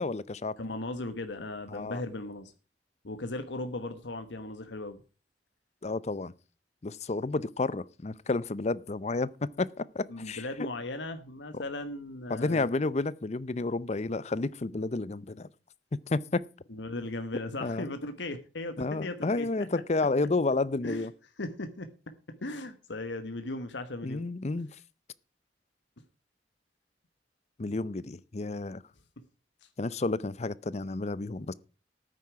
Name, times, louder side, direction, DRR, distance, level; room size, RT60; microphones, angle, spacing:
voice 1, 0.0-0.6 1.7-2.0 5.8-6.3 6.8-9.3 9.6-10.4 11.5-11.6 12.3-15.5 15.9-16.4 17.6-17.9 18.8-21.1 24.0-24.7 27.6-28.8 29.8-31.5, left 3 dB, 40° left, 0.6 m, -31 dB
voice 2, 0.6-2.5 3.0-5.0 10.1-12.7 16.7-19.8 20.8-21.1 21.4-24.2 29.6-29.7, left 2 dB, 90° left, 1.3 m, -37 dB
13.5 x 9.6 x 4.7 m
head